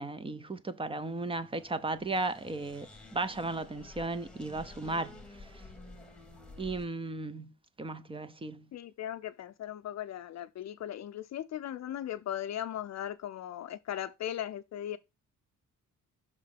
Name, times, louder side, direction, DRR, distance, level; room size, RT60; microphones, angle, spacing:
voice 1, 0.0-5.1 6.6-7.5 7.8-8.7, right 3 dB, 15° right, 0.5 m, -35 dB
sound 1, 0.9-6.9, left 2 dB, 5° left, 1.1 m, -51 dB
voice 2, 8.7-15.0, left 11 dB, 55° left, 0.5 m, -38 dB
6.2 x 3.7 x 5.7 m
wide cardioid pair, 175°, 32 cm